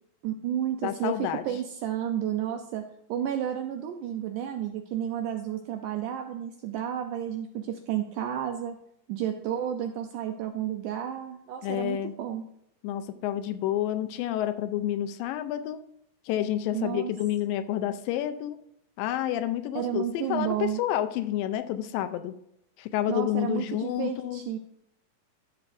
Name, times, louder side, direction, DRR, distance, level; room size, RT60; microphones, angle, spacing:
voice 1, 0.2-2.8 3.1-8.8 9.1-12.5 16.7-17.1 19.8-20.8 23.1-24.6, right 10 dB, 80° right, 5 dB, 1.9 m, -31 dB
voice 2, 0.8-1.4 11.6-12.1 12.8-15.9 16.3-18.6 19.0-22.3 22.8-24.4, left 12 dB, 80° left, 10 dB, 2.2 m, -29 dB
12.5 x 7.1 x 2.6 m, 0.73 s
omnidirectional pair, 4.1 m